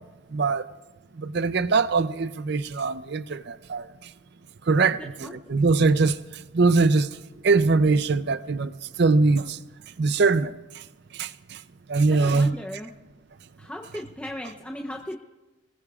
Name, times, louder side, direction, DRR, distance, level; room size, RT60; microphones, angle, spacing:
voice 1, 0.3-0.6 1.2-3.8 4.7-6.1 6.5-7.1 7.4-8.7 9.0-9.6 10.0-10.5 11.2-11.3 11.9-12.6, right 3 dB, 50° right, 0.5 m, -21 dB
voice 2, 4.9-5.3 12.1-12.9 13.6-15.2, left 1 dB, 5° left, 0.6 m, -37 dB
26.5 x 20.0 x 2.4 m
head